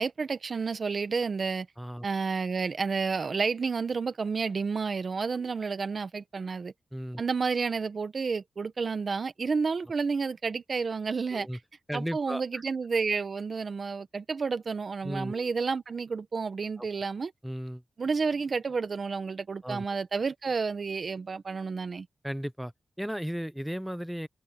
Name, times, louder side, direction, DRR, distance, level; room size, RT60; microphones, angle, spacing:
voice 1, 0.0-1.7 2.0-6.7 7.2-11.5 11.9-17.3 18.0-22.1, right 5 dB, 55° right, 1.3 m, -30 dB
voice 2, 6.9-7.2 11.3-11.6 11.9-12.6 15.0-15.5 16.8-16.9 17.4-17.8 19.6-19.8 22.2-22.7 23.0-24.3, equal, 5° right, 0.8 m, -35 dB
cardioid pair, 80°, 0 cm